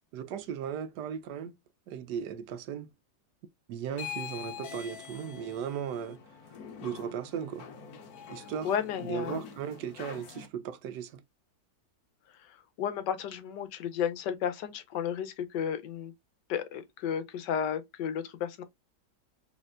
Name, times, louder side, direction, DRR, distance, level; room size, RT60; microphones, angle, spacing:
voice 1, 0.1-1.6 1.9-2.9 3.7-6.2 6.8-7.7 8.3-8.7 9.1-11.2, right 8 dB, 75° right, 1.1 m, -37 dB
sound 1, 3.9-10.5, left 7 dB, 65° left, 1.2 m, -44 dB
voice 2, 8.6-9.4 12.8-16.1 16.5-18.6, left 8 dB, 80° left, 1.3 m, -33 dB
4.2 x 3.3 x 2.4 m
omnidirectional pair, 1.9 m